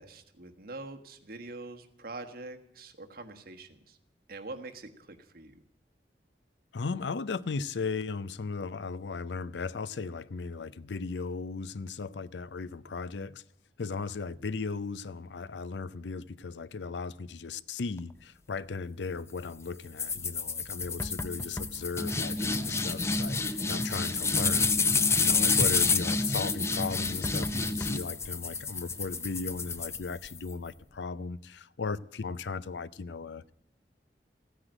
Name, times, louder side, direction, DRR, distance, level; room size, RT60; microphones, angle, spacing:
voice 1, 0.0-4.0 4.3-5.6, right 2 dB, 55° right, 1.4 m, -44 dB
voice 2, 6.7-13.4 13.8-33.5, left 4 dB, 80° left, 0.5 m, -37 dB
sound 1, 20.0-30.5, left 4 dB, 15° left, 0.6 m, -29 dB
15.0 x 9.9 x 9.0 m
head